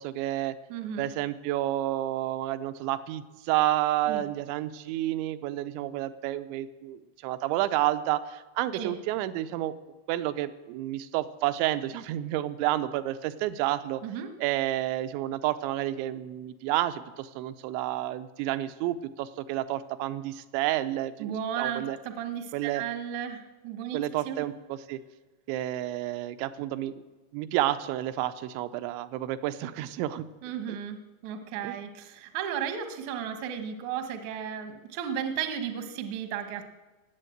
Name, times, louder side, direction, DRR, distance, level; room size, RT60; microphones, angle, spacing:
voice 1, 0.0-0.6 1.0-9.7 10.1-14.0 14.4-22.0 22.5-22.8 23.9-25.0 25.5-26.9 27.3-30.3 30.7-30.8 31.6-31.8, right 14 dB, 85° right, 11 dB, 2.9 m, -30 dB
voice 2, 0.7-1.1 4.1-4.3 8.7-8.9 14.0-14.3 21.2-24.4 30.4-36.7, right 8 dB, 70° right, 7 dB, 1.8 m, -34 dB
18.5 x 8.3 x 7.9 m, 1.2 s
omnidirectional pair, 5.2 m